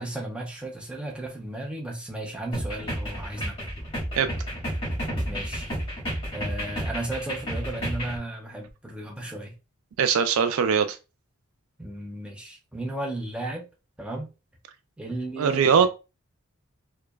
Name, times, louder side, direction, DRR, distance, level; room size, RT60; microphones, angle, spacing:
voice 1, 0.0-3.6 5.3-5.7 6.3-9.5 11.8-13.7 14.0-14.3 15.0-15.9, right 2 dB, 5° right, 0.6 m, -34 dB
sound 1, 2.5-8.2, equal, 25° left, 1.9 m, -31 dB
voice 2, 10.0-11.0 15.4-15.9, right 6 dB, 70° right, 0.3 m, -21 dB
4.8 x 2.2 x 2.3 m
head